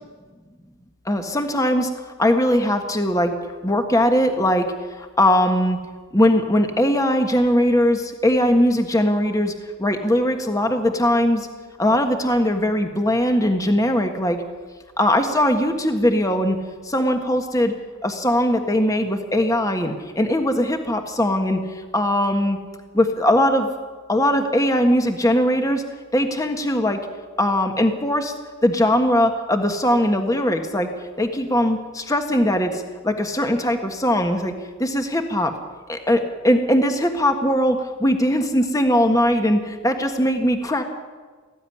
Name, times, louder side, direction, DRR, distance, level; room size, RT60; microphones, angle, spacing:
voice 1, 1.0-1.9 2.2-3.3 3.6-5.8 6.1-9.5 9.8-11.5 11.8-14.4 15.0-16.6 16.8-17.7 18.0-21.6 21.9-22.6 22.9-23.7 24.1-25.8 26.1-27.0 27.4-28.3 28.6-30.9 31.2-34.5 34.8-35.5 35.9-40.8, left 1 dB, 15° left, 5 dB, 1.5 m, -20 dB
18.5 x 15.0 x 9.9 m, 1.4 s
head